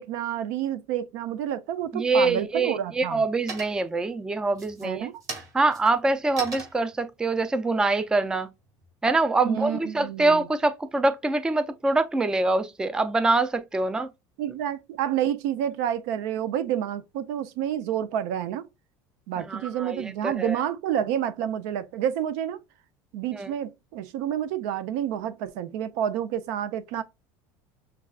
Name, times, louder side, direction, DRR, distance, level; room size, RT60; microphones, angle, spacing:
voice 1, 0.0-3.2 4.8-5.1 9.4-10.5 14.4-18.6 19.3-22.6 23.1-27.0, right 10 dB, 75° right, 0.5 m, -29 dB
sound 1, 1.8-2.4 2.8-3.2 3.5-4.0 4.5-8.9, right 3 dB, 35° right, 2.4 m, -40 dB
voice 2, 1.9-5.1 5.5-8.5 9.0-14.1 19.5-20.6 23.3-23.5, right 3 dB, 10° right, 0.3 m, -24 dB
6.0 x 2.3 x 2.3 m
supercardioid pair, 130°, 9 cm